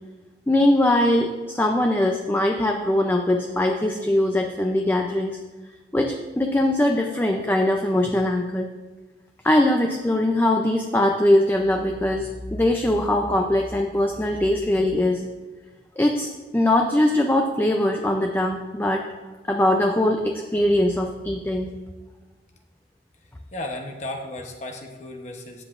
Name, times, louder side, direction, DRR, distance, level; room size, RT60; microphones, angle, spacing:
voice 1, 0.5-5.4 5.9-8.7 9.4-15.2 16.0-19.0 19.5-21.7, left 1 dB, 10° left, 3 dB, 0.4 m, -21 dB
voice 2, 23.5-25.6, left 1 dB, 40° left, 2 dB, 0.9 m, -34 dB
12.5 x 8.3 x 2.5 m, 1.3 s
head